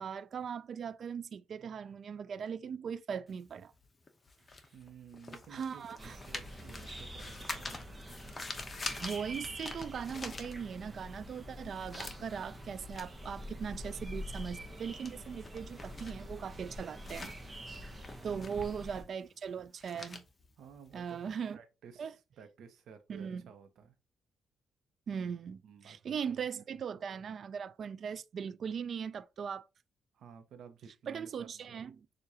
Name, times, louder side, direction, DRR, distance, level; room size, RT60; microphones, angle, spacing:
voice 1, 0.0-3.7 5.5-6.2 9.0-17.3 18.2-20.2 20.9-21.6 22.0-22.1 23.1-23.4 25.1-29.7 31.1-32.1, right 7 dB, 55° right, 0.3 m, -39 dB
sound 1, 3.3-11.0 11.4-21.4, left 3 dB, 30° left, 0.8 m, -46 dB
voice 2, 4.7-8.0 18.2-18.8 20.6-23.9 25.6-26.5 30.1-31.9, right 7 dB, 70° right, 0.9 m, -54 dB
sound 2, 6.0-19.0, equal, 20° right, 0.9 m, -46 dB
6.5 x 2.5 x 2.8 m
cardioid pair, 90°, 0 cm